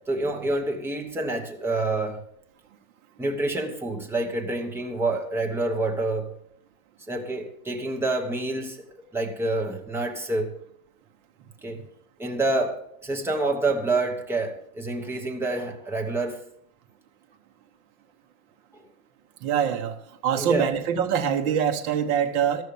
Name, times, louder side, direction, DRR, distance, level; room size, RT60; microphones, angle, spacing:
voice 1, 0.1-2.2 3.2-6.3 7.1-8.8 9.1-10.5 11.6-11.8 12.2-16.4 18.7-18.8 20.4-20.7, right 2 dB, 5° right, 2 dB, 1.0 m, -27 dB
voice 2, 19.4-22.6, right 8 dB, 40° right, 5 dB, 1.3 m, -24 dB
13.0 x 6.3 x 6.9 m, 0.71 s
supercardioid pair, 150°, 44 cm